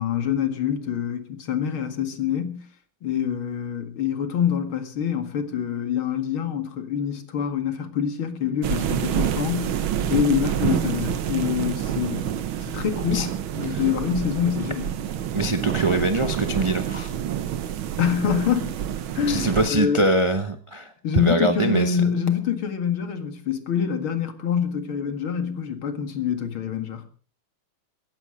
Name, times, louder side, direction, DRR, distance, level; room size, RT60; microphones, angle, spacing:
voice 1, 0.0-2.6 3.0-9.8 10.1-12.3 12.6-15.0 18.0-18.7 19.1-20.1 21.0-27.1, left 8 dB, 70° left, 2.7 m, -26 dB
sound 1, 8.6-19.7, right 10 dB, 70° right, 1.8 m, -27 dB
voice 2, 15.3-17.1 19.3-22.0, right 2 dB, 30° right, 0.5 m, -23 dB
16.5 x 14.5 x 5.1 m
omnidirectional pair, 2.4 m